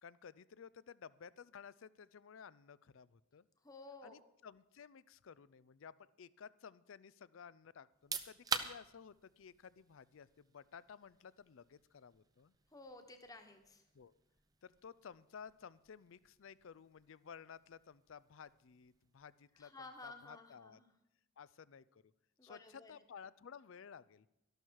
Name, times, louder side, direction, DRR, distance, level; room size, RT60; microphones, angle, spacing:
voice 1, 0.0-3.5 4.0-12.5 13.9-14.2 14.6-20.8 21.4-22.1 22.4-24.3, left 6 dB, 70° left, 19 dB, 0.4 m, -55 dB
voice 2, 3.6-4.2 12.7-13.8 19.6-20.9 22.4-22.9, left 3 dB, 15° left, 5 dB, 1.2 m, -54 dB
sound 1, 7.9-20.5, right 5 dB, 15° right, 0.6 m, -49 dB
13.0 x 12.0 x 4.6 m, 0.90 s
head